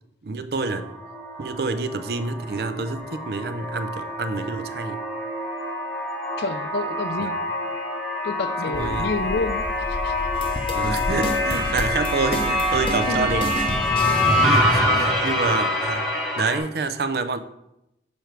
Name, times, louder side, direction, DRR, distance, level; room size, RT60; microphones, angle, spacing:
voice 1, 0.2-0.9 1.4-5.0 7.2-7.3 8.7-9.1 10.7-13.6 14.4-16.1 16.4-17.4, right 3 dB, 55° right, 0.5 m, -27 dB
sound 1, 0.6-16.6, left 1 dB, ahead, 1.2 m, -25 dB
voice 2, 6.4-7.6 8.2-10.1 12.7-13.5 14.0-14.2 15.1-15.3, left 3 dB, 65° left, 0.4 m, -30 dB
sound 2, 8.7-14.0, left 1 dB, 90° left, 1.1 m, -34 dB
sound 3, 10.4-14.5, left 1 dB, 30° left, 0.7 m, -31 dB
6.8 x 4.5 x 4.6 m
head